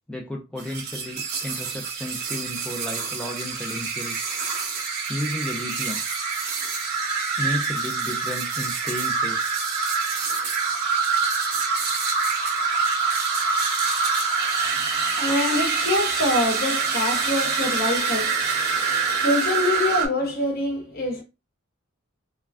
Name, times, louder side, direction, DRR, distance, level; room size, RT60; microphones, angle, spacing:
voice 1, 0.1-4.3 5.1-6.0 7.4-9.4, left 1 dB, 5° left, 0.4 m, -33 dB
sound 1, 0.6-20.1, right 5 dB, 50° right, 1.0 m, -25 dB
voice 2, 15.2-18.5 19.1-21.2, left 2 dB, 45° left, 0.9 m, -25 dB
3.2 x 2.2 x 2.4 m
head